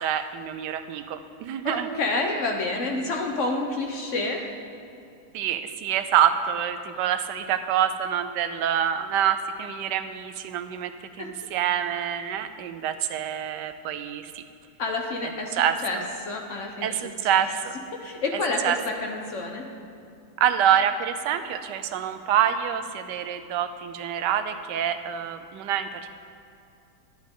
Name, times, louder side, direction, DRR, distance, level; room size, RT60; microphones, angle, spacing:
voice 1, 0.0-1.9 5.3-10.9 11.2-14.4 15.6-16.0 16.8-17.7 18.6-18.8 20.4-26.1, right 9 dB, 90° right, 10 dB, 1.2 m, -26 dB
voice 2, 1.6-4.5 11.2-11.3 14.8-16.0 16.3-17.0 17.3-17.5 17.9-19.6, left 2 dB, 50° left, 1 dB, 1.2 m, -29 dB
11.0 x 10.5 x 3.7 m, 2.6 s
omnidirectional pair, 1.8 m